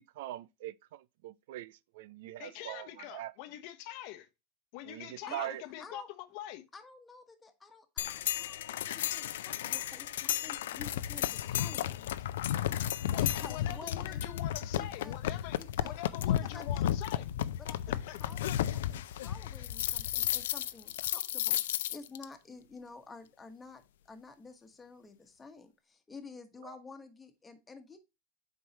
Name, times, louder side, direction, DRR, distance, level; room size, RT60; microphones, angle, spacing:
voice 1, 0.0-3.3 4.8-5.6 26.6-26.7, right 14 dB, 70° right, 0.4 m, -42 dB
voice 2, 2.4-4.3 4.7-6.6 9.7-9.8 10.2-10.6 13.1-15.6 15.8-17.3 18.1-18.2, left 13 dB, 55° left, 0.9 m, -44 dB
voice 3, 6.7-12.0 13.2-14.2 14.8-15.2 15.6-16.0 16.3-16.9 17.6-28.0, left 4 dB, 15° left, 1.3 m, -50 dB
sound 1, 8.0-22.2, left 11 dB, 80° left, 0.4 m, -33 dB
7.8 x 4.7 x 2.9 m
hypercardioid pair, 120°, 0 cm